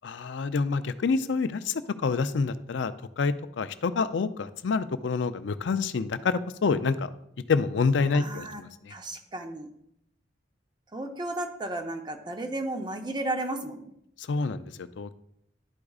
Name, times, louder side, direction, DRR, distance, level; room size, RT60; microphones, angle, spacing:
voice 1, 0.0-1.7 2.0-2.9 3.2-6.3 6.6-7.1 7.5-8.4 14.3-14.6 15.0-15.1, left 4 dB, 65° left, 12 dB, 0.4 m, -27 dB
voice 2, 8.1-8.6 8.9-9.7 10.9-13.9, right 2 dB, 25° right, 5 dB, 0.7 m, -33 dB
11.5 x 4.8 x 2.4 m, 0.76 s
head